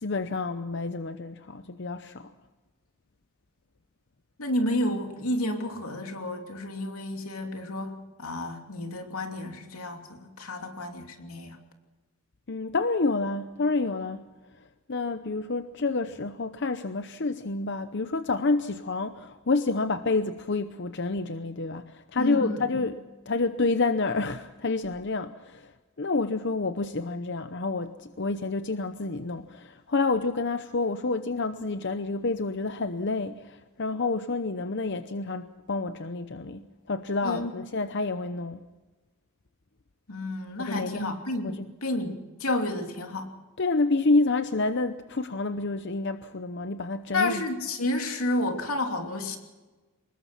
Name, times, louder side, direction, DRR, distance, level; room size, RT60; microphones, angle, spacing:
voice 1, 0.0-2.3 12.5-14.2 14.9-22.9 23.3-25.7 26.0-38.6 40.7-41.1 41.4-41.6 43.6-47.4, left 3 dB, 55° left, 0.8 m, -28 dB
voice 2, 4.4-11.6 22.2-22.8 37.2-37.5 40.1-43.3 47.1-49.4, left 1 dB, 85° left, 2.9 m, -31 dB
24.5 x 20.5 x 6.0 m
head